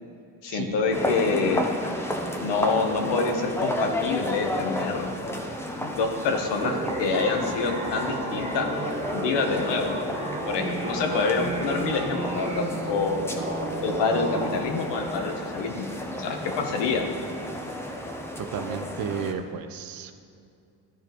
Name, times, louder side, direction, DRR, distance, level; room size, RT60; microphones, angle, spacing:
voice 1, 0.4-1.7 2.4-5.1 5.8-8.7 9.1-10.0 10.5-13.2 13.8-15.9 16.2-17.0, left 4 dB, 75° left, 4 dB, 1.2 m, -26 dB
sound 1, 0.9-19.3, equal, 5° left, 0.6 m, -33 dB
sound 2, 6.6-14.6, right 2 dB, 15° right, 1.0 m, -32 dB
voice 2, 18.4-20.1, right 7 dB, 55° right, 9 dB, 0.6 m, -33 dB
13.5 x 5.0 x 3.1 m, 2.5 s
cardioid pair, 120°, 42 cm